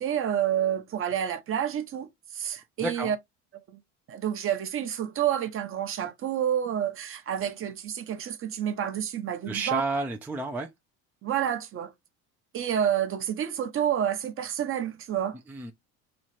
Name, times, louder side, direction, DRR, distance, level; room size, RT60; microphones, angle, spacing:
voice 1, 0.0-3.2 3.7-3.8 4.1-9.8 11.2-11.9 12.5-15.4, right 9 dB, 35° right, 0.8 m, -29 dB
voice 2, 2.8-3.1 9.5-10.7 15.5-15.7, right 2 dB, 5° right, 0.4 m, -31 dB
3.1 x 2.3 x 4.1 m
supercardioid pair, 115°, 35 cm